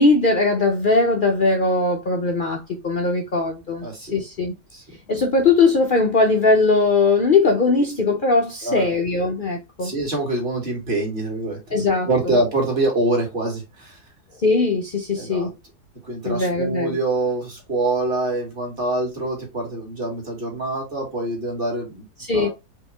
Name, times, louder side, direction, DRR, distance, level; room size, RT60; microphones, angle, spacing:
voice 1, 0.0-3.9 4.1-4.5 5.1-9.9 11.7-12.1 14.4-15.5 16.2-17.0 22.2-22.5, left 3 dB, 70° left, 0.5 m, -19 dB
voice 2, 3.8-4.1 4.7-4.8 8.6-9.0 9.8-11.6 12.1-14.0 15.1-15.5 16.0-22.0 22.3-22.5, right 2 dB, 35° right, 2.0 m, -25 dB
4.7 x 3.1 x 3.4 m
omnidirectional pair, 1.8 m